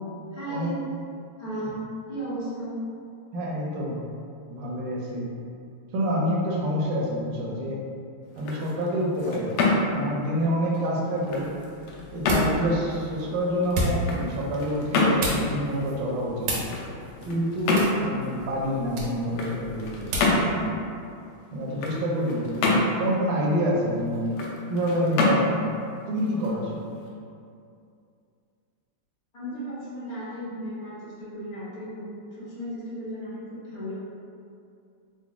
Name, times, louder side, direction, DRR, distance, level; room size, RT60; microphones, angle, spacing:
voice 1, 0.3-0.9 1.4-1.8 2.1-2.8 29.3-33.9, right 1 dB, 65° left, -12 dB, 0.5 m, -35 dB
voice 2, 3.3-4.0 4.5-5.3 5.9-7.8 8.3-9.6 9.8-11.5 12.1-16.5 17.2-20.8 21.5-24.3 24.7-25.5 26.1-26.9, equal, 70° right, -3 dB, 1.2 m, -27 dB
sound 1, 8.2-27.1, left 2 dB, 80° left, 1.5 m, -29 dB
sound 2, 11.3-20.4, equal, 90° right, 1.7 m, -34 dB
4.0 x 2.1 x 3.5 m, 2.5 s
omnidirectional pair, 2.4 m